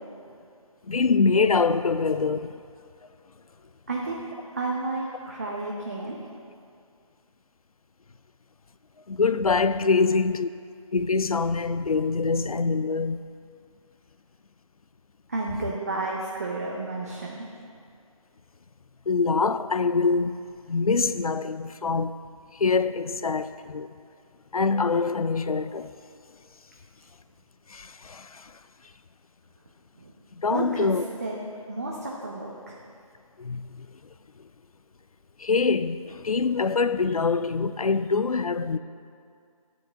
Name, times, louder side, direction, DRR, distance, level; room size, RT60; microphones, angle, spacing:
voice 1, 0.8-2.6 9.1-10.5 10.9-13.2 19.1-20.4 20.7-22.1 22.5-23.9 24.5-25.9 27.7-28.5 30.3-31.0 33.4-33.9 34.4-34.5 35.4-38.8, left 4 dB, 80° left, 0.4 m, -24 dB
voice 2, 3.9-4.2 4.5-6.2 15.3-17.5 30.0-30.1 30.5-30.9 31.2-31.4 31.7-32.8, right 2 dB, 25° right, 0.6 m, -31 dB
12.5 x 4.7 x 5.3 m
figure-of-eight pair, 160°, 18 cm